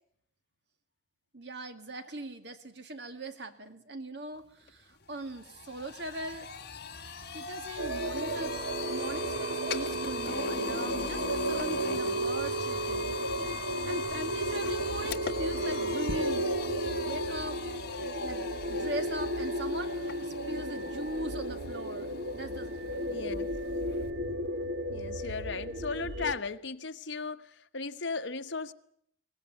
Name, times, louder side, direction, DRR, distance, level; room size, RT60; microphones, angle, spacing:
voice 1, 1.3-6.5 7.3-13.6 13.9-16.5 17.0-17.6 18.2-23.2, right 1 dB, 65° right, 2.1 m, -40 dB
sound 1, 4.7-4.8 5.1-24.1, left 4 dB, 55° left, 1.7 m, -39 dB
sound 2, 7.8-26.3, right 1 dB, 80° right, 1.6 m, -34 dB
voice 2, 23.1-23.5 24.9-28.7, left 4 dB, 75° left, 1.2 m, -36 dB
23.5 x 19.0 x 9.2 m
head